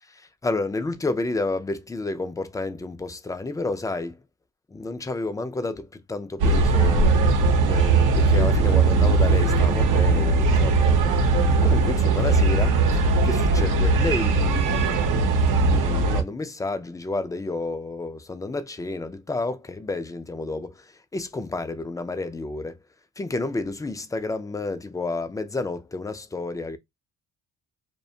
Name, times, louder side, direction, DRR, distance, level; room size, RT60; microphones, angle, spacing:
voice 1, 0.4-4.2 4.7-7.2 7.6-11.2 11.6-22.8 23.2-26.8, left 3 dB, 10° left, 0.3 m, -31 dB
sound 1, 6.4-16.2, right 3 dB, 85° right, 0.8 m, -19 dB
2.4 x 2.2 x 2.6 m
cardioid pair, 90°, 30 cm